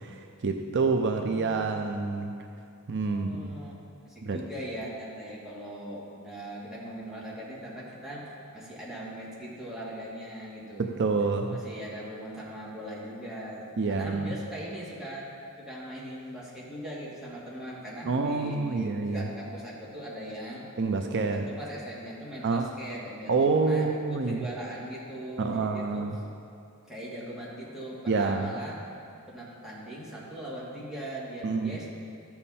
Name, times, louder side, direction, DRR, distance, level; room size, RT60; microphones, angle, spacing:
voice 1, 0.0-2.4 2.9-3.6 4.2-4.4 10.8-11.5 13.8-14.3 18.1-19.3 20.8-21.5 22.4-22.7 23.3-24.5 25.4-26.1 28.1-28.5 31.4-31.8, right 4 dB, 55° right, 4 dB, 0.5 m, -27 dB
voice 2, 3.0-3.7 4.0-10.8 11.5-15.3 15.6-20.7 21.0-26.1 26.9-28.8 29.3-31.9, right 1 dB, ahead, -7 dB, 2.1 m, -40 dB
13.5 x 7.2 x 4.3 m, 2.4 s
head